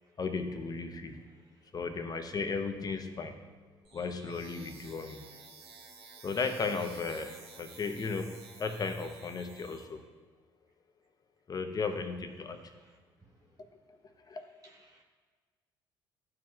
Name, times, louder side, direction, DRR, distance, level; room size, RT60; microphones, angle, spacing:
voice 1, 0.2-1.2 1.7-3.4 3.9-5.2 6.2-10.0 11.5-12.8 14.3-14.5, left 4 dB, 35° left, 7 dB, 0.9 m, -35 dB
voice 2, 1.4-1.7 12.5-13.3 14.2-14.4 14.6-15.0, right 2 dB, 35° right, -2 dB, 1.3 m, -64 dB
sound 1, 3.8-9.8, right 4 dB, 55° right, 1.4 m, -53 dB
12.0 x 4.8 x 2.4 m, 1.5 s
hypercardioid pair, 60°, 11 cm